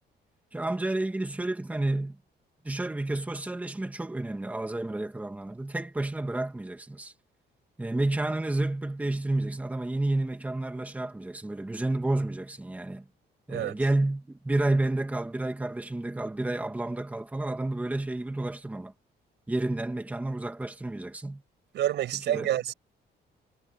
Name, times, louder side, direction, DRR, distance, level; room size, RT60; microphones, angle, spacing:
voice 1, 0.5-2.2 2.6-7.1 7.8-13.0 13.5-18.9 19.5-21.4 22.3-22.5, right 2 dB, 10° right, 2.1 m, -30 dB
voice 2, 21.7-22.7, right 12 dB, 80° right, 6.2 m, -28 dB
cardioid pair, 165°, 18 cm